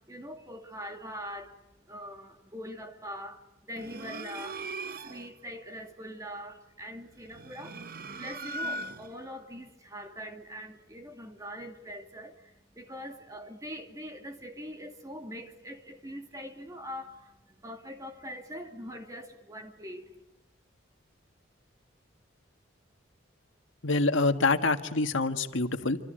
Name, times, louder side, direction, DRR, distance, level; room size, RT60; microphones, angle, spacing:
voice 1, 0.0-1.6 1.9-7.9 8.1-20.2, equal, 15° right, 2.5 m, -43 dB
sound 1, 3.8-5.3 7.2-9.3, right 2 dB, 50° right, 1.0 m, -39 dB
voice 2, 23.8-26.0, left 3 dB, 80° left, 1.8 m, -26 dB
27.5 x 26.0 x 7.8 m
head